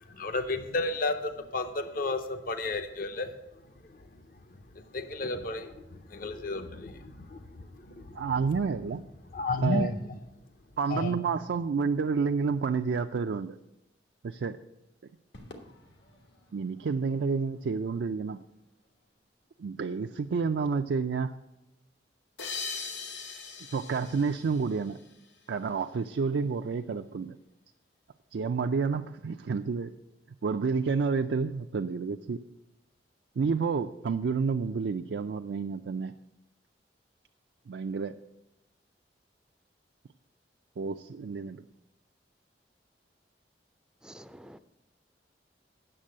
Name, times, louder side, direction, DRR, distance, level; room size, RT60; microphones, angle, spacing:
voice 1, 0.0-8.3 9.3-10.2 10.9-11.2, left 2 dB, 50° left, 0.7 m, -33 dB
voice 2, 8.1-9.0 9.6-9.9 10.8-13.6 14.2-14.6 16.5-18.4 19.6-21.3 23.7-25.0 25.5-27.4 28.3-29.9 30.4-32.4 33.4-36.2 37.7-38.1 40.8-41.6, right 5 dB, 75° right, 0.4 m, -29 dB
Crowd / Fireworks, 15.3-19.8, left 1 dB, 75° left, 1.4 m, -55 dB
sound 1, 22.4-25.5, left 5 dB, 90° left, 1.2 m, -40 dB
voice 3, 44.0-44.6, equal, 5° right, 0.4 m, -49 dB
8.8 x 6.8 x 6.4 m
head